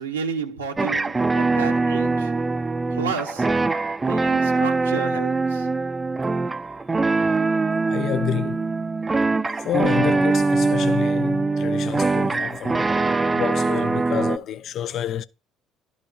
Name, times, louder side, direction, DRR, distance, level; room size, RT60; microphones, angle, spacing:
voice 1, 0.0-2.3 2.9-3.7 4.1-5.7, right 5 dB, 80° right, 0.8 m, -31 dB
sound 1, 0.8-14.4, right 3 dB, 20° right, 0.5 m, -22 dB
voice 2, 7.9-8.7 9.6-13.0 13.3-15.3, left 10 dB, 50° left, 0.4 m, -28 dB
12.0 x 4.8 x 2.7 m
figure-of-eight pair, 55°, 0 cm